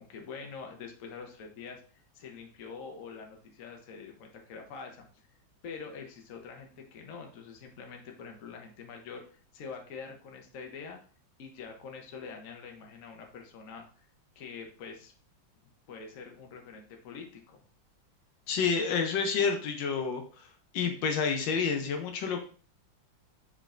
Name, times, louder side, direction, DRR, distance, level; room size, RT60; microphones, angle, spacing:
voice 1, 0.0-5.1 5.6-11.0 11.4-14.1 14.3-15.1 15.9-17.6, left 5 dB, 55° left, 2 dB, 1.0 m, -45 dB
voice 2, 18.5-20.2 20.7-22.4, left 5 dB, 75° left, 4 dB, 1.4 m, -29 dB
5.2 x 4.2 x 2.5 m, 0.41 s
omnidirectional pair, 2.1 m